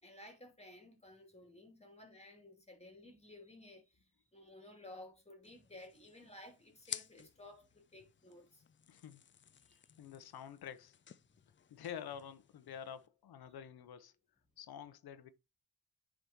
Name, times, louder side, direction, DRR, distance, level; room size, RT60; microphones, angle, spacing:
voice 1, 0.0-8.6 9.6-9.8 11.3-11.4 13.5-13.6, left 1 dB, 15° left, 2.5 m, -56 dB
sound 1, 5.4-13.1, left 8 dB, 30° left, 0.4 m, -53 dB
voice 2, 8.9-9.2 10.0-10.9 11.7-14.1 14.6-15.3, left 9 dB, 80° left, 0.9 m, -48 dB
9.1 x 5.0 x 2.9 m
cardioid pair, 70°, 37 cm